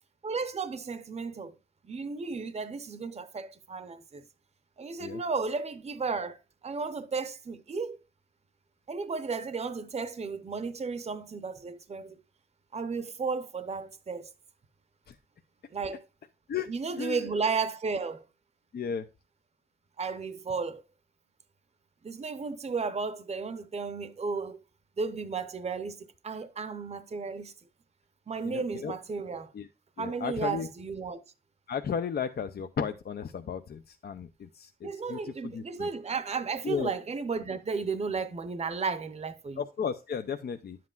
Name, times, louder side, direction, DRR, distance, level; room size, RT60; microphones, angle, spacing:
voice 1, 0.2-1.5 1.8-4.2 4.8-8.0 8.9-12.2 12.7-14.3 15.7-16.0 16.7-18.2 20.0-20.8 22.0-24.6 25.0-27.5 28.3-29.5 30.0-31.2 34.8-39.6, right 4 dB, 40° right, 0.6 m, -34 dB
voice 2, 18.7-19.1 28.5-28.9 29.5-29.7 30.0-30.7 31.7-35.9 36.6-36.9 39.6-40.8, left 7 dB, 80° left, 0.5 m, -34 dB
10.5 x 7.6 x 2.3 m
wide cardioid pair, 125°, 16 cm